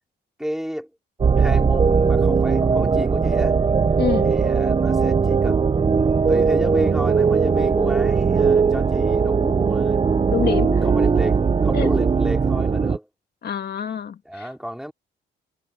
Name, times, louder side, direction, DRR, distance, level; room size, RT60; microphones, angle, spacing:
voice 1, 0.4-0.9 1.4-3.6 4.2-10.0 10.8-13.1 14.3-14.9, equal, ahead, 3.6 m, -31 dB
sound 1, 1.2-13.0, right 5 dB, 25° right, 0.7 m, -19 dB
voice 2, 4.0-4.3 10.3-10.9 11.7-11.9 13.4-14.5, left 8 dB, 55° left, 2.1 m, -26 dB
cardioid pair, 90°, 20 cm